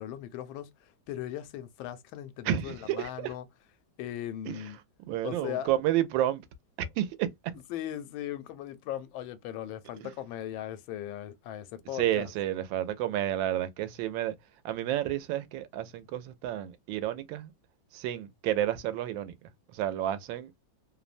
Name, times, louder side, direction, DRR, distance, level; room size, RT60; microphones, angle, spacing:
voice 1, 0.0-3.5 4.0-4.8 5.2-5.7 7.7-12.3, left 11 dB, 85° left, 1.3 m, -38 dB
voice 2, 2.4-3.3 4.5-4.7 5.1-6.4 6.8-7.3 10.0-10.1 11.9-14.3 14.6-17.5 17.9-20.5, right 12 dB, 80° right, 1.3 m, -31 dB
3.2 x 2.1 x 2.4 m
omnidirectional pair, 2.1 m